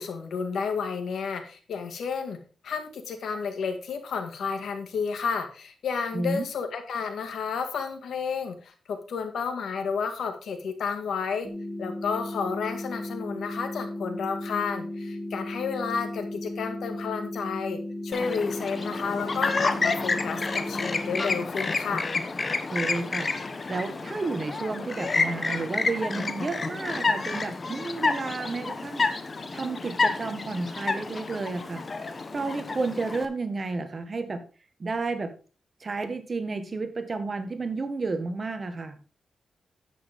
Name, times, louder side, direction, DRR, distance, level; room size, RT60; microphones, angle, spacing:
voice 1, 0.0-2.4 2.6-11.5 11.8-22.1, left 5 dB, 85° left, 7 dB, 2.0 m, -31 dB
voice 2, 6.1-6.4 22.7-29.1 29.5-31.9 32.3-34.4 34.8-35.3 35.8-39.0, right 3 dB, 40° right, 8 dB, 1.6 m, -31 dB
sound 1, 11.4-21.5, left 1 dB, 5° right, 2.7 m, -35 dB
Chirp tweet, 18.1-33.3, left 3 dB, 40° left, 1.1 m, -29 dB
10.0 x 8.5 x 3.6 m, 0.35 s
cardioid pair, 100°, 0 cm